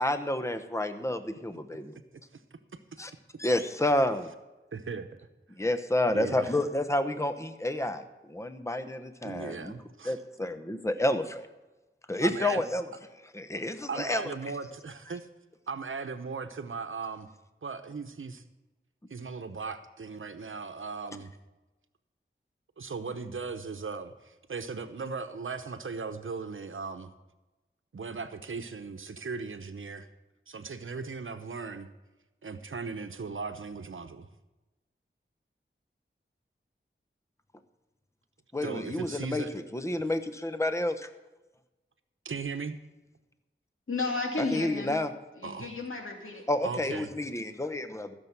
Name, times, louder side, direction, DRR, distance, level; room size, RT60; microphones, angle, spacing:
voice 1, 0.0-1.9 3.0-3.1 3.4-4.3 5.6-9.7 10.0-11.5 12.1-12.8 13.3-14.2 38.5-41.1 44.5-45.1 46.5-48.1, left 1 dB, 15° left, 10 dB, 0.9 m, -29 dB
voice 2, 2.3-2.8 4.7-5.3 6.1-6.5 9.2-10.2 12.2-12.6 13.9-15.3 15.7-17.3 17.6-18.4 19.1-21.3 22.8-27.1 27.9-30.1 30.5-31.9 32.4-34.3 38.6-39.5 42.2-42.8 45.4-45.7 46.6-47.1, right 4 dB, 75° right, 9 dB, 0.9 m, -38 dB
voice 3, 43.9-45.0 45.4-46.4, left 3 dB, 75° left, 1 dB, 2.7 m, -33 dB
15.0 x 7.0 x 5.9 m, 1.1 s
cardioid pair, 45°, 21 cm